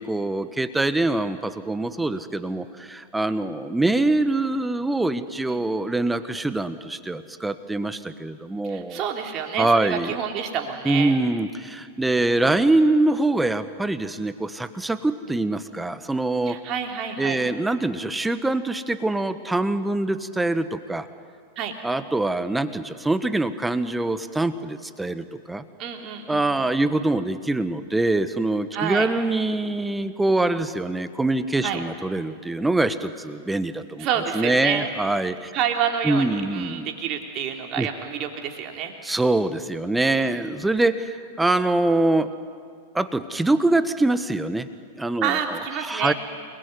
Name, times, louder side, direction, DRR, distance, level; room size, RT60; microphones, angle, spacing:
voice 1, 0.0-9.0 9.6-10.1 10.8-16.6 17.2-21.1 21.8-25.6 26.3-34.1 34.3-35.5 36.0-36.9 37.8-37.9 39.0-42.3 42.9-44.7 44.9-46.1, right 2 dB, 5° right, 12 dB, 1.3 m, -24 dB
voice 2, 8.6-11.2 15.2-15.4 16.5-17.4 21.6-21.7 25.8-26.7 28.7-29.1 31.6-31.8 34.0-34.9 35.5-38.9 40.0-40.3 45.2-46.1, right 8 dB, 35° right, 3 dB, 3.5 m, -28 dB
29.0 x 21.0 x 9.7 m, 2.1 s
figure-of-eight pair, 95°, 0 cm